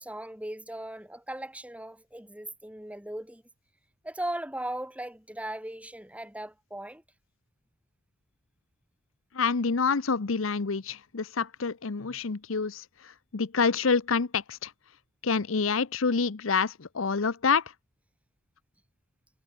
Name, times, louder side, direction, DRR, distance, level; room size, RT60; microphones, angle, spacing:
voice 1, 0.0-3.4 4.0-7.0, right 1 dB, 5° right, 2.7 m, -38 dB
voice 2, 9.3-14.7 15.2-17.6, left 5 dB, 85° left, 0.8 m, -27 dB
head